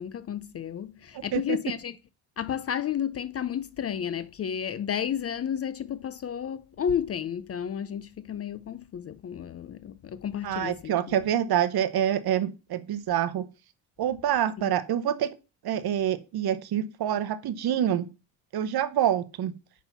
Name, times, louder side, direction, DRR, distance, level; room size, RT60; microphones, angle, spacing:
voice 1, 0.0-2.0 2.4-11.2 14.6-14.7, left 8 dB, 35° left, 0.4 m, -32 dB
voice 2, 10.4-13.5 14.0-15.3 15.6-18.1 18.5-19.5, right 10 dB, 55° right, 0.8 m, -26 dB
5.6 x 3.7 x 5.8 m
supercardioid pair, 65°, 46 cm